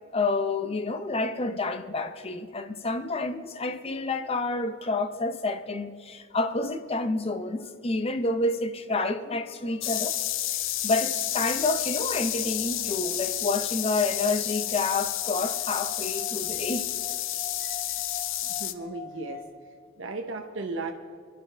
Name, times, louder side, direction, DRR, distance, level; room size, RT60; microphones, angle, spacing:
voice 1, 0.1-10.2 10.8-16.9, left 3 dB, 30° left, 0.7 m, -29 dB
sound 1, 9.8-18.7, left 13 dB, 65° left, 0.6 m, -30 dB
sound 2, 11.2-19.5, left 5 dB, 10° left, 2.8 m, -45 dB
voice 2, 18.4-19.4 20.0-20.9, right 3 dB, 65° right, 0.9 m, -35 dB
26.0 x 11.0 x 3.4 m
head